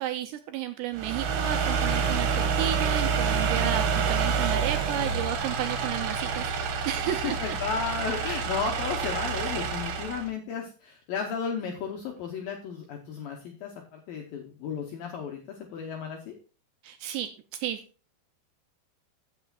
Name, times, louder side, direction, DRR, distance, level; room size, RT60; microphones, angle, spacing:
voice 1, 0.0-7.6 16.8-17.8, right 11 dB, 85° right, 7 dB, 2.5 m, -33 dB
sound 1, 0.9-10.3, right 5 dB, 70° right, 3.2 m, -28 dB
voice 2, 3.5-3.8 7.1-16.3, left 6 dB, 80° left, 1 dB, 2.1 m, -34 dB
15.0 x 6.7 x 2.4 m, 0.35 s
omnidirectional pair, 5.4 m